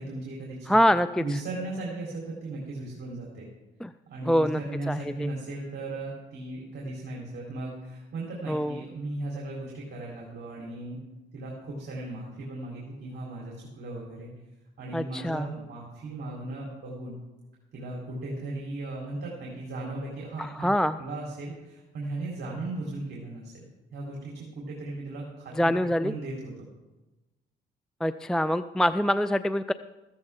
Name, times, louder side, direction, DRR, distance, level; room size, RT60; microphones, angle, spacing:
voice 1, 0.0-0.8 1.2-3.5 4.1-11.0 11.3-14.3 14.8-17.2 17.7-20.7 21.0-23.7 23.9-26.7, right 2 dB, 55° right, -3 dB, 3.9 m, -37 dB
voice 2, 0.7-1.2 3.8-3.9 4.3-4.6 4.9-5.3 8.5-8.8 14.9-15.5 20.4-21.0 25.6-26.1 28.0-29.7, equal, 5° left, 13 dB, 0.3 m, -25 dB
14.5 x 14.5 x 3.7 m, 1.1 s
cardioid pair, 90°, 20 cm